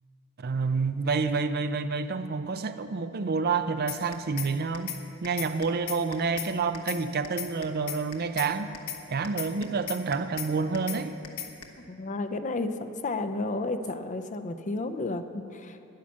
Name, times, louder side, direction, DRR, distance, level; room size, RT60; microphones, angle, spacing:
voice 1, 0.4-4.9 5.2-8.7 9.1-11.1, right 4 dB, 45° right, 11 dB, 0.5 m, -28 dB
sound 1, 3.9-4.5 4.7-5.0 5.2-6.5 6.7-7.0 7.2-8.5 8.7-9.0 9.2-10.5 10.7-11.0 11.2-11.6, left 10 dB, 70° left, 1.2 m, -35 dB
voice 2, 11.9-15.8, left 2 dB, 35° left, 8 dB, 0.6 m, -32 dB
10.5 x 10.5 x 7.4 m, 2.8 s
head